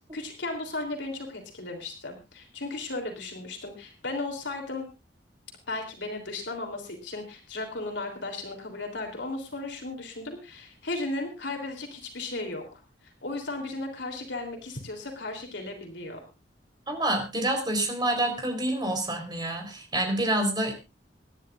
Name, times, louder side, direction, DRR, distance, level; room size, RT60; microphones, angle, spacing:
voice 1, 0.1-4.9 5.7-12.8 13.2-16.2, left 2 dB, 85° left, 3 dB, 3.5 m, -35 dB
voice 2, 16.9-20.7, right 1 dB, 25° right, 4 dB, 4.3 m, -27 dB
26.0 x 10.5 x 2.6 m, 0.27 s
head